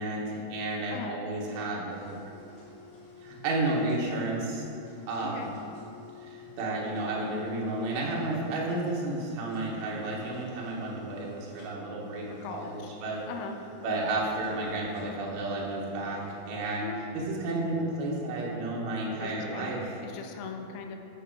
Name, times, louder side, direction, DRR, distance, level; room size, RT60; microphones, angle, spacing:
voice 1, 0.0-2.1 3.2-4.7 5.1-5.6 6.2-13.3 13.8-20.0, right 2 dB, 75° right, -3 dB, 3.0 m, -32 dB
sound 1, 1.9-16.5, left 3 dB, 65° left, 1.5 m, -52 dB
voice 2, 12.3-12.8 13.3-13.6 16.8-17.0 19.2-19.7 20.0-21.0, left 5 dB, 85° left, 4 dB, 2.6 m, -40 dB
8.5 x 5.7 x 4.5 m, 2.7 s
omnidirectional pair, 4.5 m